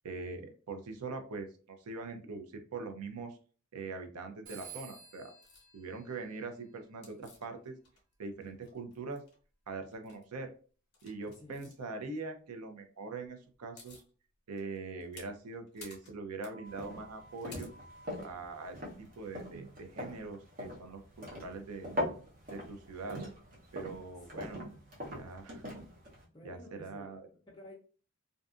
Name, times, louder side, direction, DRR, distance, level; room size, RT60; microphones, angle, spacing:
voice 1, 0.0-3.4 3.7-5.3 5.7-7.7 8.2-9.2 9.7-10.5 11.0-14.0 14.5-17.7 18.2-21.9 22.5-23.2 23.7-24.6 25.1-25.6 26.4-27.3, right 3 dB, 90° right, 6 dB, 0.5 m, -42 dB
Telephone, 4.5-7.0, right 7 dB, 65° right, 1.1 m, -52 dB
sound 1, 5.4-5.7 7.0-8.1 8.4-9.4 9.9-10.2 10.9-11.7 13.2-13.3 13.5-14.1 14.6-18.3, left 3 dB, 45° left, 0.8 m, -54 dB
voice 2, 11.3-11.7 24.3-24.7 26.2-27.7, left 1 dB, 20° left, -6 dB, 0.4 m, -52 dB
sound 2, 16.7-26.2, left 1 dB, 40° right, 0.8 m, -42 dB
2.5 x 2.4 x 2.3 m, 0.39 s
head